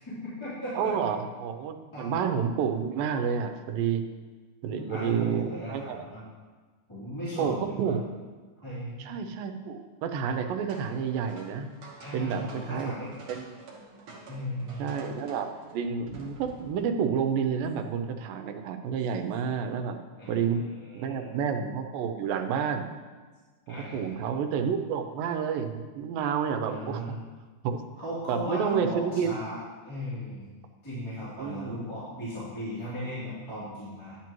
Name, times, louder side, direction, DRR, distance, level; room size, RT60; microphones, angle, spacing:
voice 1, 0.0-1.1 1.9-2.1 4.7-6.2 6.9-8.0 8.6-9.1 12.0-13.1 14.3-15.0 20.2-21.4 23.7-24.1 26.6-27.2 28.0-29.6 29.8-30.5 30.8-34.2, equal, 10° left, -11 dB, 2.8 m, -37 dB
voice 2, 0.7-4.1 4.6-6.1 7.4-8.1 9.0-11.7 12.1-12.9 13.3-13.6 14.8-20.0 20.3-20.6 20.9-22.9 23.9-27.0 27.6-27.8 28.3-29.3 31.4-31.8, right 7 dB, 85° right, 6 dB, 2.4 m, -29 dB
sound 1, 10.7-16.9, right 2 dB, 50° right, 1.8 m, -49 dB
11.0 x 8.8 x 3.0 m, 1.4 s
omnidirectional pair, 3.9 m